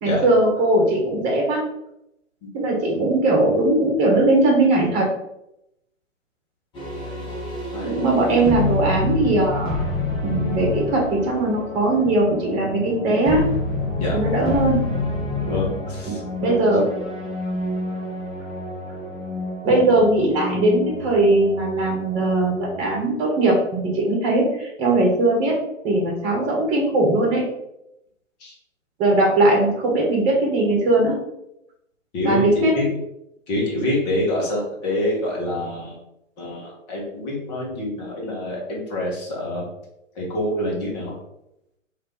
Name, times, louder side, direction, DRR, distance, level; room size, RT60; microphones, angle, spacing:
voice 1, 0.0-1.6 2.5-5.1 7.8-9.8 10.2-13.4 14.1-14.9 16.1-16.9 19.6-25.6 25.8-27.4 29.0-31.2 32.2-32.8, right 2 dB, 25° right, -1 dB, 1.3 m, -19 dB
sound 1, 6.7-22.8, left 2 dB, 10° left, 0.7 m, -28 dB
voice 2, 14.0-14.3 15.4-16.2 28.4-28.5 32.1-32.9 33.5-35.9 36.4-39.7 40.2-41.2, left 1 dB, 35° left, -3 dB, 1.4 m, -26 dB
2.9 x 2.8 x 3.9 m, 0.83 s
figure-of-eight pair, 120°, 39 cm